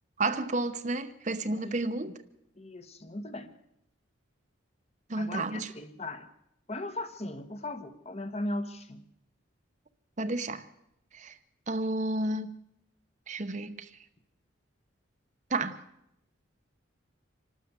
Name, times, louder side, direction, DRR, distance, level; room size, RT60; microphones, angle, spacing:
voice 1, 0.2-2.1 5.1-5.7 10.2-10.6 11.1-11.3 11.7-12.5 13.3-13.9 15.5-15.8, right 2 dB, 35° right, 0.9 m, -31 dB
voice 2, 2.6-3.5 5.1-6.3 6.7-9.0, left 1 dB, 30° left, 1.2 m, -38 dB
26.0 x 12.5 x 8.1 m
head